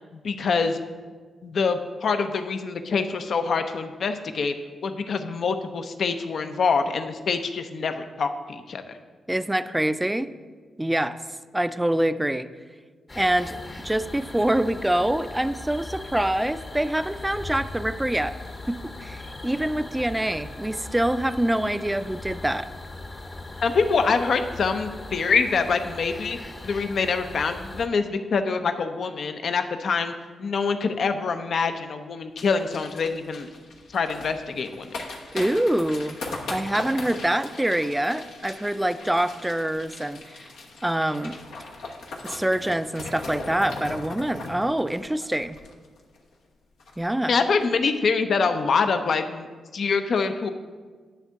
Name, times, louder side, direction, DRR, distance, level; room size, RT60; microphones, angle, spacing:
voice 1, 0.2-0.8 1.4-4.5 4.8-9.0 23.6-26.4 26.6-30.1 30.4-33.5 33.9-34.9 47.3-49.5 49.7-50.5, left 5 dB, 65° left, 8 dB, 0.6 m, -25 dB
voice 2, 9.3-10.3 10.8-11.2 11.5-12.5 13.1-13.6 13.8-18.3 18.7-22.7 35.3-36.2 36.5-40.5 40.8-41.4 42.2-45.6 47.0-47.4, right 1 dB, 10° right, 12 dB, 0.4 m, -25 dB
sound 1, 13.1-27.9, left 2 dB, 30° left, 0.9 m, -39 dB
sound 2, 32.4-46.2 46.4-46.5 46.8-47.1 47.5-47.6, left 2 dB, 85° left, 1.1 m, -39 dB
10.0 x 3.5 x 6.9 m, 1.5 s
supercardioid pair, 50°, 0 cm